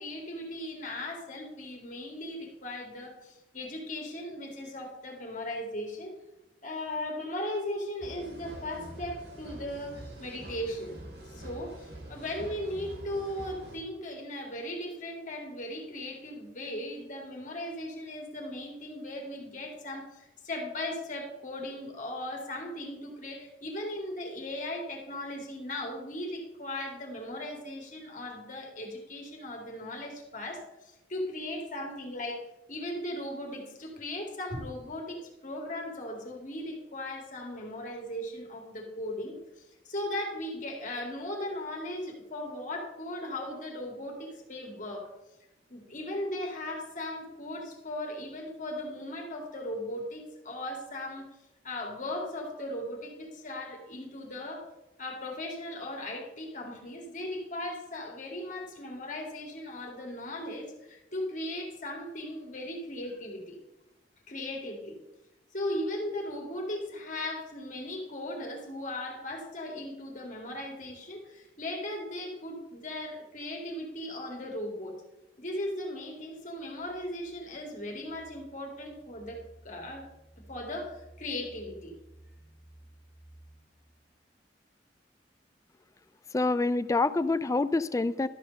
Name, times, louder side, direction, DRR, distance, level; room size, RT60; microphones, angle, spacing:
voice 1, 0.0-6.1 6.6-11.0 11.3-32.4 32.7-39.4 39.8-45.1 45.7-51.3 51.6-54.7 55.0-63.6 64.3-65.0 65.5-75.0 75.4-79.4 79.6-80.1 80.5-81.9, left 1 dB, 45° left, 1 dB, 2.4 m, -37 dB
sound 1, 8.0-13.8, right 1 dB, 65° right, 2.5 m, -45 dB
sound 2, 76.4-84.2, right 1 dB, 10° right, 2.1 m, -56 dB
voice 2, 86.3-88.3, left 3 dB, 20° left, 14 dB, 0.3 m, -26 dB
12.5 x 5.1 x 6.4 m, 0.93 s
head